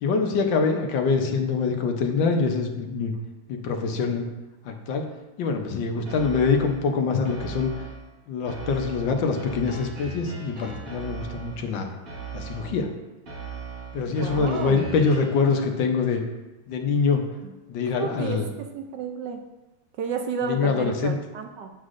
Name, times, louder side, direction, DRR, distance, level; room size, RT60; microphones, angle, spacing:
voice 1, 0.0-3.1 3.5-4.2 4.6-5.0 5.4-7.7 8.3-11.9 12.3-12.9 13.9-16.2 16.7-17.2 17.7-18.5 20.4-21.2, left 5 dB, 75° left, 4 dB, 1.4 m, -24 dB
sound 1, 6.1-6.9 7.3-8.1 8.5-11.7 12.1-12.9 13.3-15.5, right 4 dB, 45° right, 1.9 m, -38 dB
voice 2, 6.4-6.7 14.2-14.8 17.4-17.5 17.8-19.4 20.0-21.7, right 5 dB, 75° right, 4 dB, 1.1 m, -32 dB
7.9 x 7.3 x 2.5 m, 1.1 s
omnidirectional pair, 2.1 m